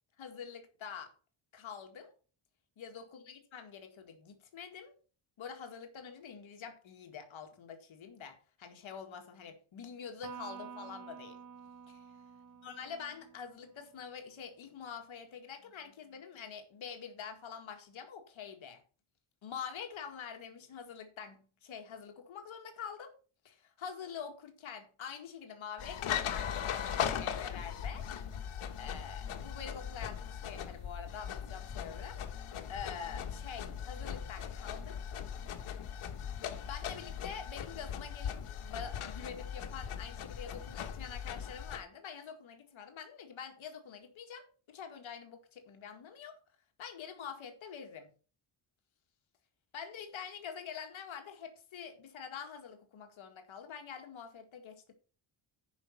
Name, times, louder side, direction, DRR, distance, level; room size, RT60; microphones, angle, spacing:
voice 1, 0.2-1.1 1.5-2.1 2.8-5.0 5.4-11.4 11.9-12.1 12.6-18.8 19.4-23.1 23.4-28.1 28.8-32.2 32.7-35.0 36.6-46.4 46.8-48.1 49.7-54.9, left 7 dB, 70° left, 1.9 m, -46 dB
Electric guitar, 10.2-13.8, right 7 dB, 40° right, 1.3 m, -49 dB
sound 1, 25.8-41.8, left 8 dB, 90° left, 1.5 m, -39 dB
10.5 x 5.5 x 5.7 m
wide cardioid pair, 155°, 48 cm